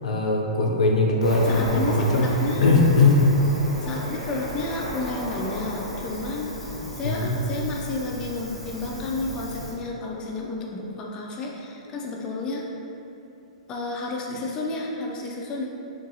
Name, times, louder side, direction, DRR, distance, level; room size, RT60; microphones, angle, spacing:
voice 1, 0.0-2.3 2.6-3.2 7.0-7.3, left 3 dB, 85° left, -1 dB, 0.4 m, -20 dB
Cricket, 1.2-9.7, equal, ahead, 0.9 m, -34 dB
voice 2, 1.5-2.6 3.8-12.7 13.7-15.7, left 2 dB, 25° left, -2 dB, 0.3 m, -31 dB
2.8 x 2.6 x 2.7 m, 2.8 s
hypercardioid pair, 135°, 4 cm